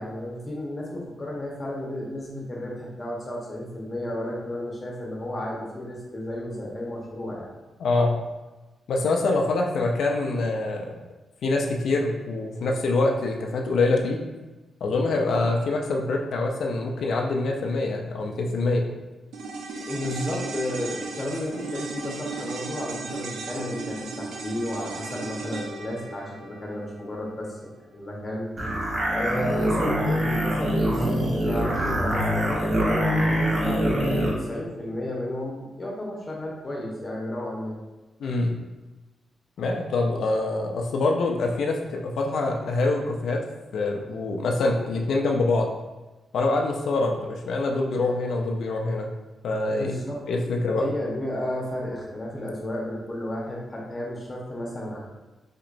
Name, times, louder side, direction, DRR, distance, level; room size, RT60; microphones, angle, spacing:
voice 1, 0.0-7.5 19.8-28.5 29.1-37.8 49.7-50.2 50.7-55.0, left 1 dB, 30° left, -3 dB, 1.1 m, -32 dB
voice 2, 7.8-8.2 8.9-10.9 11.4-14.2 14.8-18.8 38.2-38.6 39.6-43.4 43.7-45.7 46.3-49.1 49.4-49.9 50.3-50.9, left 2 dB, 75° left, 1 dB, 0.4 m, -25 dB
sound 1, 19.3-27.8 28.1-28.2, right 3 dB, 85° right, 0.5 m, -36 dB
sound 2, 28.6-34.4, equal, 30° right, 1.1 m, -24 dB
4.3 x 2.9 x 2.6 m, 1.1 s
cardioid pair, 90°, 0 cm